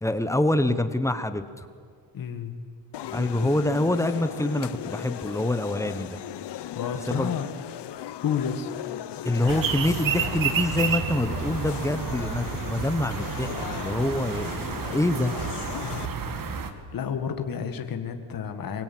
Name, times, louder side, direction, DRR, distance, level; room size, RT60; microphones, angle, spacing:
voice 1, 0.0-1.7 3.1-6.2 7.1-7.3 9.2-15.3, left 1 dB, 5° left, 10 dB, 1.2 m, -26 dB
voice 2, 2.1-2.5 6.7-7.5 8.2-8.7 15.8-16.1 16.5-18.8, left 7 dB, 50° left, 6 dB, 2.0 m, -31 dB
sound 1, 2.9-16.1, left 12 dB, 65° left, 0.9 m, -37 dB
sound 2, 9.5-16.7, right 6 dB, 50° right, 2.1 m, -30 dB
23.5 x 23.0 x 9.4 m, 2.1 s
cardioid pair, 150°, 44 cm